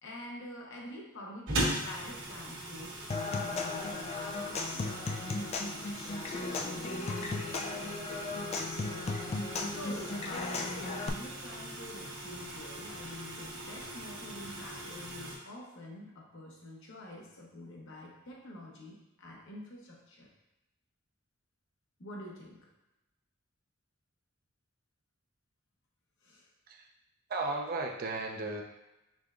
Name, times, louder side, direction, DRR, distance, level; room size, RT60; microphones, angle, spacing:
voice 1, 0.0-3.0 3.4-7.6 9.7-20.3 22.0-22.6 26.2-26.5, left 1 dB, 65° left, -2 dB, 0.9 m, -47 dB
sound 1, 1.5-15.4, right 1 dB, 65° right, 1.3 m, -40 dB
Human voice / Acoustic guitar / Percussion, 3.1-11.1, left 3 dB, 30° left, 0.3 m, -36 dB
voice 2, 27.3-28.6, right 3 dB, 45° right, 2 dB, 0.5 m, -35 dB
5.1 x 3.5 x 2.4 m, 0.95 s
head